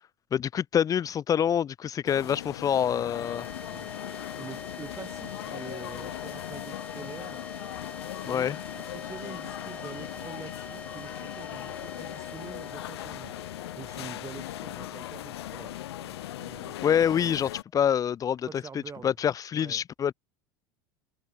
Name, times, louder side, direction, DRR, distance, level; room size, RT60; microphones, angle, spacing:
voice 1, 0.3-3.5 8.2-8.6 16.8-18.6 19.0-20.1, left 9 dB, 25° left, 0.5 m, -26 dB
sound 1, 2.1-17.6, left 14 dB, 85° left, 2.7 m, -39 dB
sound 2, 2.1-4.2 6.1-7.6 9.2-10.3, right 22 dB, 60° right, 7.0 m, -65 dB
sound 3, 3.1-17.5, left 2 dB, 10° left, 5.9 m, -45 dB
voice 2, 4.4-7.4 8.1-13.4 13.8-16.8 18.5-19.1 19.6-19.8, right 5 dB, 20° right, 4.8 m, -46 dB
supercardioid pair, 105°, 13 cm